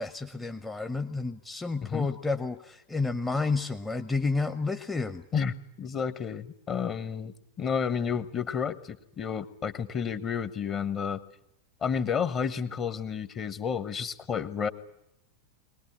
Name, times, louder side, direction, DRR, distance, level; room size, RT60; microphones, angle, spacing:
voice 1, 0.0-5.2, left 3 dB, 10° left, 7 dB, 0.9 m, -30 dB
voice 2, 5.3-11.2 11.8-14.7, left 7 dB, 30° left, 13 dB, 1.2 m, -31 dB
23.0 x 19.0 x 9.9 m, 0.81 s
figure-of-eight pair, 90°, 0 cm